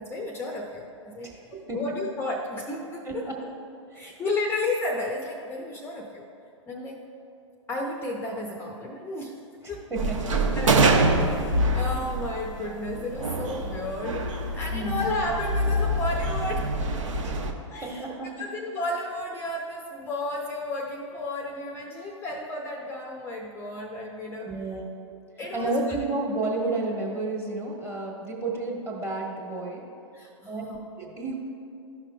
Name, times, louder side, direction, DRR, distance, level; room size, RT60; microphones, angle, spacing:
voice 1, 0.0-1.3 1.7-3.3 3.9-6.3 6.7-7.0 7.7-9.4 9.7-9.9 10.6-16.8 17.7-24.6 25.4-25.8 30.1-30.8 31.1-31.2, left 2 dB, 15° left, 1 dB, 0.5 m, -33 dB
voice 2, 1.2-1.8 3.0-3.4 3.9-4.2 9.9-10.3 14.7-15.0 17.2-17.3 17.8-18.4 24.4-24.9 25.5-29.8 30.5-30.6 31.0-31.4, right 2 dB, 15° right, -1 dB, 1.4 m, -31 dB
sound 1, 10.0-17.5, right 1 dB, 75° right, 0.8 m, -25 dB
13.0 x 5.8 x 2.2 m, 2.7 s
hypercardioid pair, 115°, 16 cm